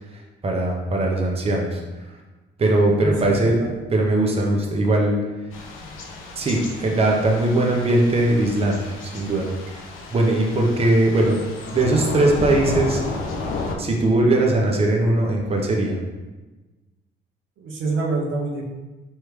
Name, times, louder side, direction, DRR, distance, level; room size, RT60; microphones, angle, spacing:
voice 1, 0.4-1.8 2.6-3.6 3.9-5.1 6.4-9.7 10.1-11.4 11.7-13.0 13.8-16.0, right 2 dB, 30° right, 0 dB, 0.8 m, -20 dB
voice 2, 3.0-3.7 17.6-18.7, right 3 dB, 75° right, -1 dB, 0.8 m, -26 dB
Thunder / Rain, 5.5-13.8, left 2 dB, 85° left, 0.7 m, -32 dB
4.9 x 3.2 x 3.2 m, 1.2 s
cardioid pair, 90°, 20 cm